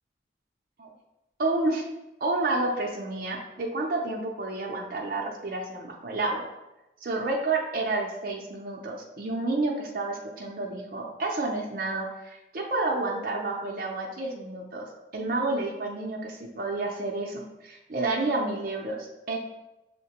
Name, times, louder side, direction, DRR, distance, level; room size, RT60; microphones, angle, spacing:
voice 1, 1.4-1.8 2.2-6.4 7.0-19.4, right 2 dB, 50° right, -1 dB, 0.5 m, -30 dB
6.3 x 2.1 x 2.8 m, 0.97 s
head